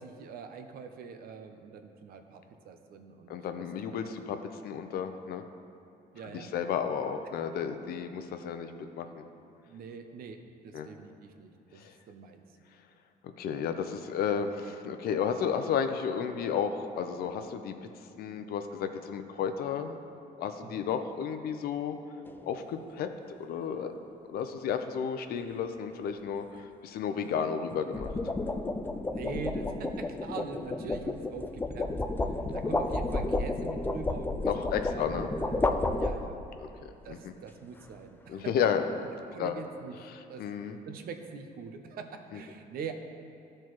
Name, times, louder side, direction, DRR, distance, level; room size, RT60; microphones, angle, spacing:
voice 1, 0.0-3.4 3.9-4.4 6.1-6.5 9.6-12.4 14.3-14.4 20.6-20.8 29.1-31.9 32.5-34.3 34.8-35.6 35.9-36.4 37.0-38.7 39.3-40.0 40.3-40.5 40.9-42.9, right 5 dB, 60° right, 6 dB, 0.6 m, -43 dB
voice 2, 3.3-4.4 4.6-5.4 6.3-8.7 9.0-9.3 10.7-10.9 11.8-11.9 13.4-17.7 18.2-20.0 20.4-22.0 22.4-23.1 23.4-23.9 24.3-28.1 34.4-35.3 36.6-36.7 37.1-37.3 38.3-38.8 39.4-39.5 40.1-40.8, left 7 dB, 65° left, 8 dB, 0.6 m, -32 dB
sound 1, 22.2-22.6 27.7-36.6, left 2 dB, 10° left, 0.3 m, -32 dB
12.5 x 4.4 x 3.1 m, 2.7 s
cardioid pair, 110°, 17 cm